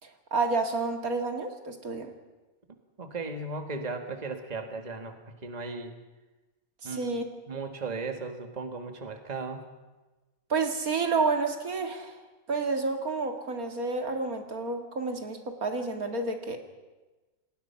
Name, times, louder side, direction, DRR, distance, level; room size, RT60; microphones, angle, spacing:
voice 1, 0.0-2.1 6.8-7.2 10.5-12.2 12.5-16.6, right 3 dB, 70° right, 5 dB, 2.6 m, -30 dB
voice 2, 3.0-6.0 6.8-7.1 7.5-9.6, right 3 dB, 30° right, 6 dB, 1.8 m, -36 dB
28.5 x 19.5 x 5.8 m, 1.2 s
omnidirectional pair, 1.6 m